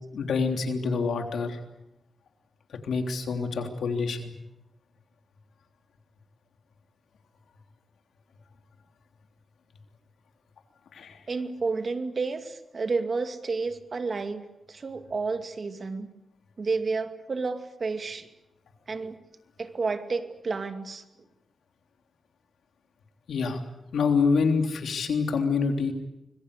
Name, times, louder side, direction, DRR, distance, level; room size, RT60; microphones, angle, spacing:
voice 1, 0.1-1.6 2.8-4.3 10.9-11.2 23.3-23.6 23.9-25.9, left 5 dB, 90° left, 4 dB, 3.4 m, -26 dB
voice 2, 11.3-16.1 16.6-18.3 18.9-19.2 19.6-21.0, right 4 dB, 45° right, 7 dB, 2.3 m, -31 dB
25.5 x 21.5 x 8.3 m, 0.93 s
wide cardioid pair, 100°, 0 cm